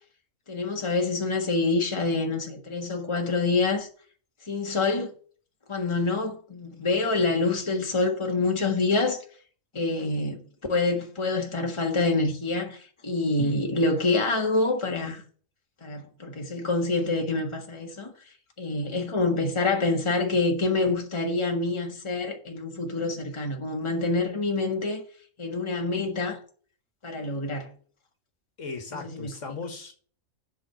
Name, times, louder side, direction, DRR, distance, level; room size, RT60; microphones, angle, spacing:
voice 1, 0.5-3.9 4.4-5.1 5.7-9.2 9.7-10.4 10.7-15.2 15.8-18.1 18.6-25.0 25.4-26.4 27.0-27.7 29.0-29.3, left 3 dB, 20° left, 1.6 m, -26 dB
voice 2, 28.6-29.9, left 4 dB, 65° left, 1.9 m, -37 dB
7.7 x 5.4 x 7.5 m
omnidirectional pair, 1.4 m